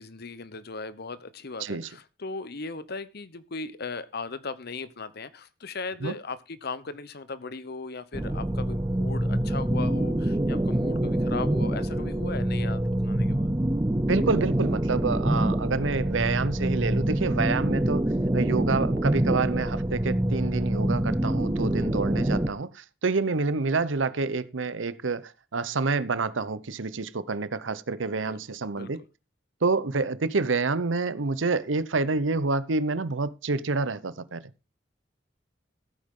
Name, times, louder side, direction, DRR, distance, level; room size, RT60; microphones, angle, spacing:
voice 1, 0.0-13.5 28.1-28.4 28.7-28.9, left 4 dB, 55° left, 0.9 m, -38 dB
sound 1, 8.1-22.5, right 1 dB, 15° right, 0.6 m, -26 dB
voice 2, 14.1-29.0 29.6-34.4, right 3 dB, 90° right, 0.8 m, -28 dB
15.0 x 9.0 x 3.7 m
head